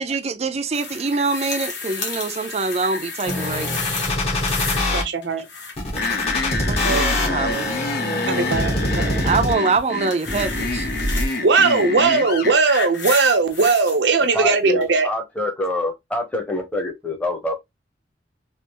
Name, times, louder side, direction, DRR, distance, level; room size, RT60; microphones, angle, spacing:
voice 1, 0.0-3.7 6.6-7.7 9.2-10.9, right 4 dB, 35° right, 0.5 m, -24 dB
sound 1, 0.7-5.0 5.2-5.9 9.6-11.4 12.2-14.0 14.8-14.9, left 4 dB, 80° left, 1.1 m, -31 dB
sound 2, 3.3-5.0 5.8-9.8 10.3-11.3, left 1 dB, 35° left, 1.1 m, -24 dB
voice 2, 4.9-5.4 6.8-7.0 8.3-9.2 11.4-15.1, right 4 dB, 85° right, 0.7 m, -19 dB
sound 3, 6.0-12.6, left 3 dB, 60° left, 0.7 m, -27 dB
voice 3, 14.3-17.6, left 1 dB, 10° left, 0.9 m, -26 dB
3.3 x 2.5 x 2.9 m
head